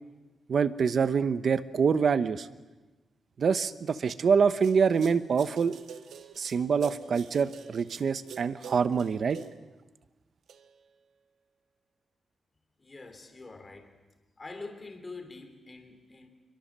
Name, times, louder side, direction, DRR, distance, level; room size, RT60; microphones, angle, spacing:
voice 1, 0.5-2.5 3.4-5.7 6.4-9.4, right 6 dB, 50° right, 13 dB, 1.0 m, -25 dB
sound 1, 4.6-9.7 10.5-11.0, right 7 dB, 80° right, 1.5 m, -47 dB
voice 2, 12.8-13.9 14.4-16.3, left 3 dB, 20° left, 6 dB, 3.5 m, -45 dB
28.0 x 23.5 x 7.5 m, 1.2 s
wide cardioid pair, 175°, 0 cm